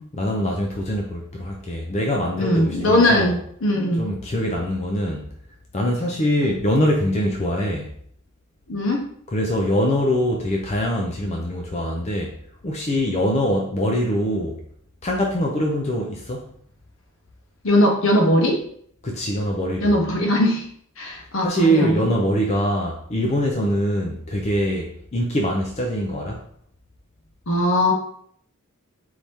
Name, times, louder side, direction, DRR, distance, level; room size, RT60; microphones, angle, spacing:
voice 1, 0.1-3.3 4.0-5.3 5.7-7.9 9.3-12.4 12.6-14.6 15.0-16.5 19.0-19.9 21.4-26.4, equal, 30° left, 0 dB, 0.5 m, -23 dB
voice 2, 2.4-4.1 8.7-9.0 17.6-18.6 19.8-20.7 21.0-22.1 27.5-27.9, left 1 dB, 65° left, 1 dB, 1.0 m, -20 dB
4.7 x 2.8 x 3.5 m, 0.62 s
head